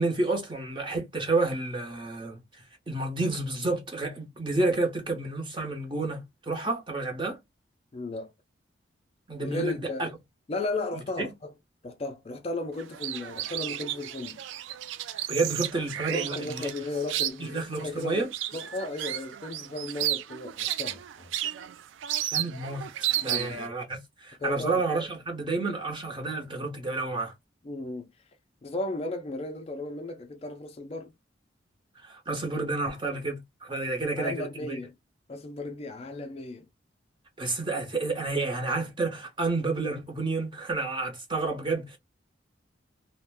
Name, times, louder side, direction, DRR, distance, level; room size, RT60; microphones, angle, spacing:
voice 1, 0.0-2.4 2.9-7.4 9.3-10.1 11.2-11.3 15.3-16.7 17.4-18.3 22.3-22.9 23.2-27.3 32.0-34.7 37.4-42.0, right 3 dB, 25° right, 0.7 m, -30 dB
voice 2, 7.9-8.3 9.4-10.1 10.5-11.5 11.8-14.4 16.1-21.3 23.3-23.6 24.4-24.8 27.6-28.1 28.6-31.1 34.2-34.9 35.3-36.7, left 2 dB, 30° left, 0.3 m, -35 dB
sound 1, 12.8-23.7, right 12 dB, 80° right, 0.3 m, -33 dB
2.4 x 2.1 x 3.3 m
head